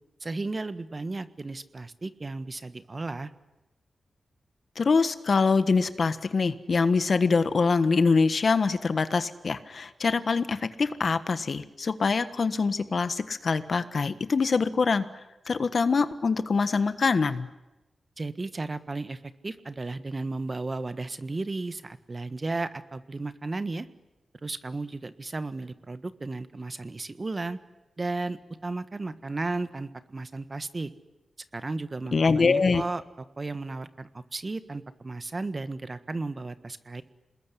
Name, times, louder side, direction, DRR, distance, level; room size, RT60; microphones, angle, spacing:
voice 1, 0.2-3.3 18.2-23.9 24.4-27.6 28.0-30.9 31.5-33.0 33.4-37.0, right 3 dB, 40° right, 12 dB, 1.5 m, -34 dB
voice 2, 4.8-15.0 15.5-17.5 32.1-32.8, left 4 dB, 60° left, 12 dB, 1.4 m, -24 dB
27.0 x 20.5 x 10.0 m, 1.0 s
cardioid pair, 60°, 0 cm